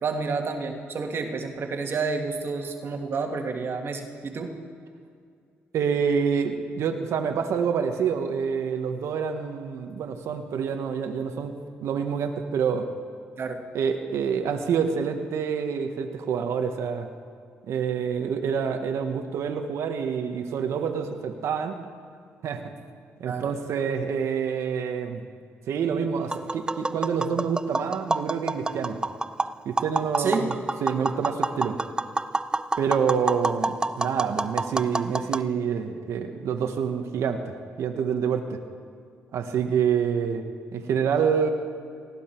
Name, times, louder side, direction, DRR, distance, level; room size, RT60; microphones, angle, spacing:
voice 1, 0.0-4.5 13.4-13.6 23.2-23.5 30.2-30.5, right 4 dB, 50° right, 4 dB, 1.7 m, -29 dB
voice 2, 5.7-11.5 11.8-12.9 13.7-17.1 17.7-21.8 22.4-22.7 23.2-25.3 25.7-29.0 29.6-30.5 30.8-31.8 32.8-38.6 39.3-40.4 40.7-41.5, right 7 dB, 70° right, 5 dB, 1.1 m, -27 dB
Tap, 26.2-35.4, right 2 dB, 15° right, 0.4 m, -28 dB
19.0 x 14.5 x 4.5 m, 2.2 s
cardioid pair, 80°, 5 cm